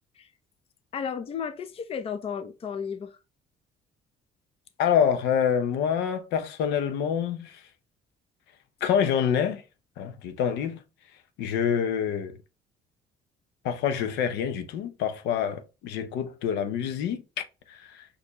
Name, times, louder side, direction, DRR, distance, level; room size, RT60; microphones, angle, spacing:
voice 1, 0.9-3.2, left 7 dB, 35° left, 0.5 m, -33 dB
voice 2, 4.8-7.6 8.8-9.6 10.0-10.8 11.4-12.4 13.6-18.0, left 8 dB, 85° left, 0.7 m, -27 dB
4.4 x 2.7 x 2.8 m
cardioid pair, 110°, 17 cm